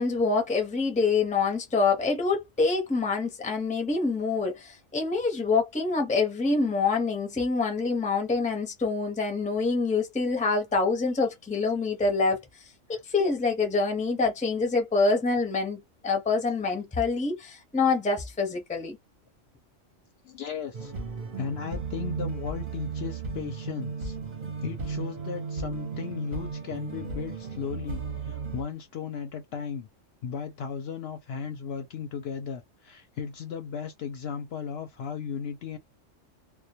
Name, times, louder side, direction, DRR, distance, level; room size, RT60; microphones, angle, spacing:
voice 1, 0.0-12.4 12.9-19.0, left 4 dB, 10° left, 0.5 m, -26 dB
voice 2, 20.2-20.9 21.4-24.2 24.6-29.9 30.2-35.8, left 7 dB, 65° left, 0.7 m, -36 dB
sound 1, 20.7-28.6, right 5 dB, 45° right, 0.7 m, -35 dB
2.2 x 2.1 x 2.7 m
omnidirectional pair, 1.3 m